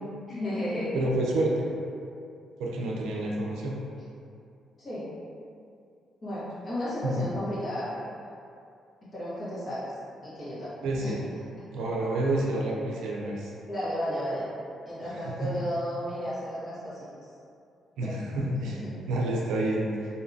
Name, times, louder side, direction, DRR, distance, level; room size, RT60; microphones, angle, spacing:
voice 1, 0.3-0.9 4.8-5.1 6.2-8.3 9.0-9.9 10.2-10.7 11.0-11.2 13.7-14.5 14.8-17.1 18.0-18.2 18.5-18.9, equal, 35° left, -12 dB, 1.1 m, -33 dB
voice 2, 0.9-1.6 2.6-3.7 7.0-7.1 10.8-11.2 11.7-13.5 15.2-15.5 18.0-20.1, right 1 dB, 85° right, -3 dB, 0.4 m, -29 dB
2.6 x 2.2 x 2.6 m, 2.5 s
cardioid pair, 90°, 0 cm